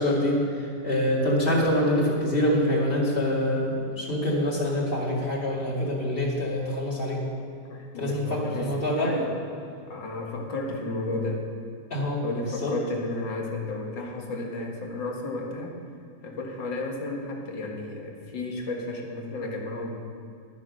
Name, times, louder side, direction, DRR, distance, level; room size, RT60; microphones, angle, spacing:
voice 1, 0.0-7.2 8.0-9.1 11.9-12.2 12.6-12.7, left 1 dB, 30° left, -3 dB, 2.4 m, -25 dB
voice 2, 7.7-9.3 9.8-11.4 12.2-15.7 16.2-20.0, left 2 dB, 80° left, 1 dB, 2.2 m, -33 dB
10.5 x 10.0 x 6.4 m, 2.4 s
omnidirectional pair, 1.9 m